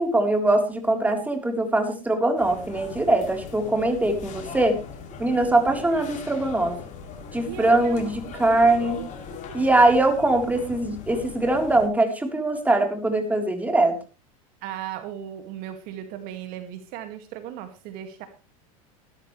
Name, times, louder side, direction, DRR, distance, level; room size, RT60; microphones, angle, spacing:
voice 1, 0.0-4.8 5.2-6.8 7.3-9.0 9.5-14.0, right 2 dB, 10° right, 4 dB, 3.9 m, -22 dB
sound 1, 2.4-11.9, left 6 dB, 40° left, 4.5 m, -40 dB
voice 2, 7.5-8.1 8.3-8.5 14.6-18.3, right 10 dB, 55° right, 8 dB, 2.2 m, -37 dB
17.5 x 13.0 x 3.3 m, 0.31 s
hypercardioid pair, 100°, 18 cm